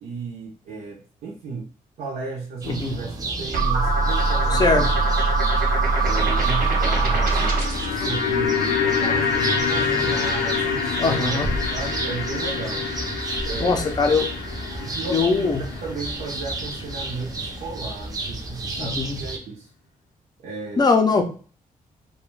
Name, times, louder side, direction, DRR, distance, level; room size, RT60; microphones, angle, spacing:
voice 1, 0.0-1.7 2.0-4.9 5.3-5.6 6.0-7.6 7.9-11.4 11.7-12.8 13.5-14.0 14.8-15.5 15.8-19.7 20.4-20.9, right 4 dB, 70° right, -3 dB, 0.6 m, -34 dB
sound 1, 2.6-19.4, right 2 dB, 25° right, 0.5 m, -32 dB
voice 2, 2.7-3.0 4.5-4.8 11.0-11.5 13.6-14.3 15.1-15.6 18.8-19.2 20.8-21.2, left 4 dB, 25° left, 5 dB, 0.4 m, -21 dB
sound 2, 3.5-7.9, right 3 dB, 85° right, 1.0 m, -21 dB
sound 3, 7.4-17.6 17.9-18.0, left 6 dB, 85° left, 0.5 m, -27 dB
2.4 x 2.2 x 3.1 m, 0.39 s
cardioid pair, 130°, 15 cm